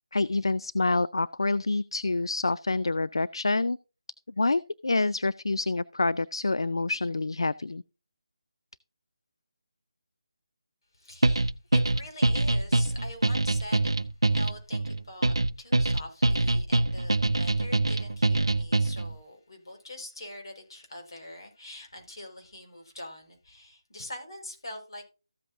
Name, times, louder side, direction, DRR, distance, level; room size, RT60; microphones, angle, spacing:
voice 1, 0.1-3.8 4.4-7.8, left 3 dB, 75° left, 0.4 m, -27 dB
voice 2, 10.9-13.9 14.2-25.1, left 1 dB, 60° left, 4.6 m, -44 dB
sound 1, 11.2-19.1, right 2 dB, 85° right, 0.5 m, -24 dB
14.5 x 8.0 x 2.6 m
figure-of-eight pair, 160°, 3 cm